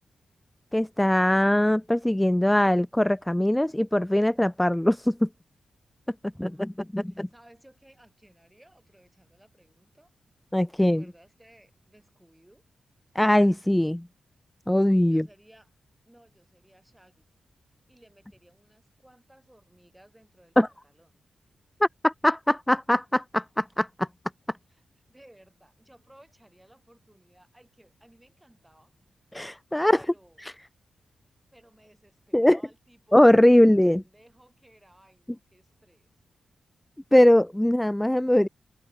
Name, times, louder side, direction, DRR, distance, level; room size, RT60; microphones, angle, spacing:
voice 1, 0.7-5.3 6.4-7.3 10.5-11.0 13.2-14.1 14.7-15.2 20.6-20.7 21.8-24.1 29.3-30.0 30.4-30.5 32.3-32.6 33.1-34.0 37.1-38.5, left 1 dB, 5° left, 0.4 m, -21 dB
voice 2, 6.3-6.7 7.1-10.1 10.8-12.6 15.1-15.7 16.1-17.2 17.9-21.1 24.7-24.8 25.1-28.9 29.8-30.5 31.5-36.1, right 1 dB, 10° right, 7.5 m, -58 dB
open air
cardioid pair, 85°, 0 cm